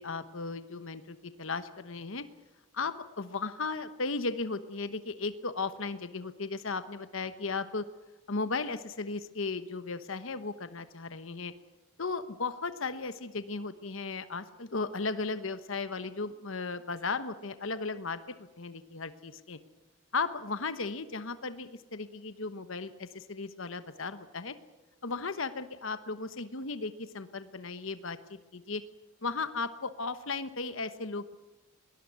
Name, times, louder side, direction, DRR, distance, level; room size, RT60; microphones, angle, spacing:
voice 1, 0.0-2.2 2.7-7.9 8.3-11.5 12.0-19.6 20.1-24.5 25.0-28.8 29.2-31.3, left 4 dB, 65° left, 11 dB, 1.1 m, -36 dB
21.5 x 18.5 x 9.4 m, 1.1 s
head